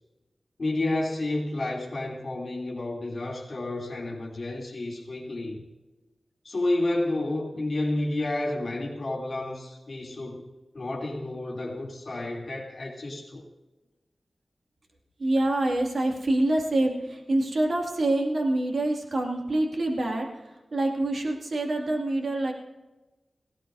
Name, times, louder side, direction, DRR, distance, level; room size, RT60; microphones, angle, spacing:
voice 1, 0.6-5.6 6.4-10.4 10.7-13.4, left 2 dB, 55° left, -2 dB, 3.1 m, -30 dB
voice 2, 15.2-22.5, right 1 dB, 65° right, 1 dB, 2.4 m, -26 dB
18.0 x 17.5 x 2.7 m, 1.1 s
wide cardioid pair, 105°, 0 cm